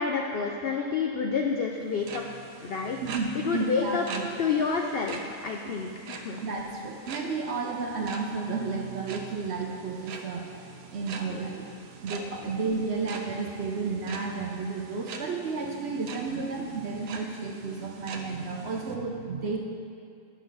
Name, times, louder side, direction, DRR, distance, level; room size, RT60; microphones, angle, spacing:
voice 1, 0.0-2.3 2.6-3.0 3.3-4.0 4.4-6.4 11.3-11.4, left 5 dB, 75° left, 1 dB, 0.5 m, -29 dB
sound 1, 1.8-19.0, right 4 dB, 75° right, 1.1 m, -44 dB
voice 2, 3.0-4.3 6.4-10.5 10.9-11.7 12.0-19.6, right 4 dB, 55° right, 0 dB, 0.8 m, -32 dB
10.5 x 6.4 x 3.9 m, 2.4 s
omnidirectional pair, 1.6 m